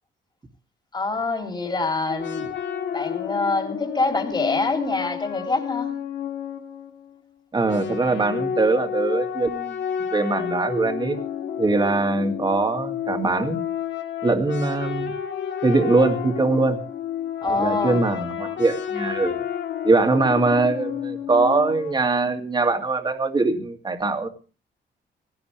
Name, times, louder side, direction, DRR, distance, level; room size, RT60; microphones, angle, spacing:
voice 1, 0.9-2.4 2.9-5.9 17.4-18.0, left 3 dB, 25° left, 4 dB, 3.7 m, -25 dB
sound 1, 2.1-7.2 7.6-21.9, left 9 dB, 85° left, 2.2 m, -31 dB
voice 2, 7.5-9.7 10.1-11.2 11.6-13.6 14.2-15.1 15.6-16.8 17.5-19.4 19.8-24.3, right 3 dB, 25° right, 6 dB, 2.4 m, -22 dB
18.5 x 17.5 x 3.4 m, 0.34 s
cardioid pair, 140°, 19 cm